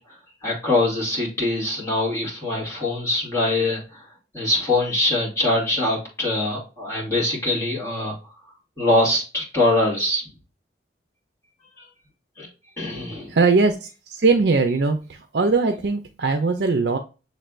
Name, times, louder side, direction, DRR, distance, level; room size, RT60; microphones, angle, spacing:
voice 1, 0.4-4.0 4.3-8.2 8.8-10.2 12.4-12.5 12.8-13.3, left 2 dB, 15° left, -4 dB, 2.2 m, -23 dB
voice 2, 13.3-17.0, right 4 dB, 60° right, 6 dB, 0.5 m, -20 dB
6.6 x 3.3 x 2.4 m, 0.32 s
head